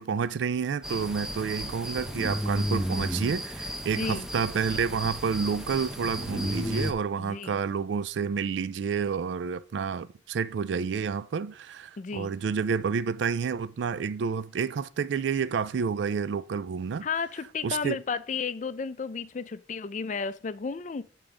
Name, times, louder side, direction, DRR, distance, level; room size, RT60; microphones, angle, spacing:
voice 1, 0.0-17.1 17.6-18.0, right 6 dB, 75° right, 0.4 m, -29 dB
sound 1, 0.8-6.9, equal, 5° right, 0.7 m, -33 dB
voice 2, 4.0-4.3 7.2-7.6 12.0-12.3 17.0-21.0, left 5 dB, 40° left, 0.4 m, -33 dB
8.8 x 3.8 x 4.9 m
head